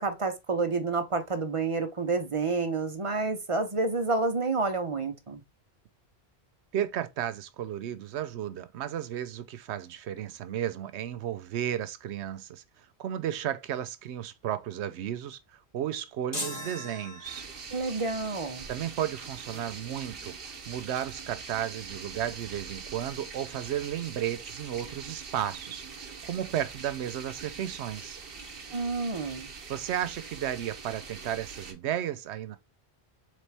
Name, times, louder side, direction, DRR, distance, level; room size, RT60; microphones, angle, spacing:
voice 1, 0.0-5.4 17.7-18.7 28.7-29.5, right 3 dB, 35° right, 0.6 m, -29 dB
voice 2, 6.7-17.4 18.7-20.3 20.7-25.8 26.2-28.2 29.7-32.6, right 11 dB, 90° right, 0.9 m, -33 dB
sound 1, 16.3-17.8, left 1 dB, 25° left, 1.1 m, -38 dB
sound 2, 17.2-31.7, right 5 dB, 60° right, 1.0 m, -43 dB
4.1 x 3.3 x 3.3 m
omnidirectional pair, 1.1 m